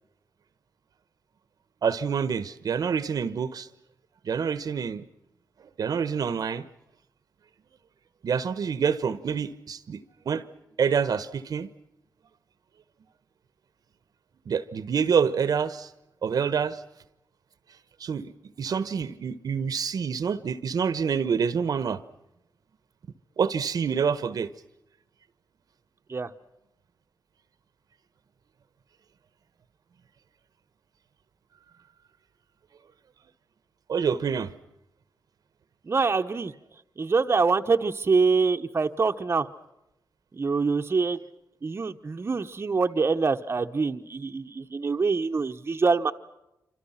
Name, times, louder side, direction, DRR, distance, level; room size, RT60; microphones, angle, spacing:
voice 1, 1.8-3.7 4.2-5.0 5.8-6.6 8.2-10.4 10.8-11.7 14.4-15.9 16.2-16.8 18.0-18.3 18.6-22.0 23.4-24.5 33.9-34.5, right 6 dB, 70° right, 1.3 m, -27 dB
voice 2, 35.8-36.5 37.0-39.5 40.3-41.2 41.6-46.1, right 4 dB, 40° right, 1.2 m, -25 dB
28.0 x 26.0 x 5.9 m
wide cardioid pair, 105°, 7 cm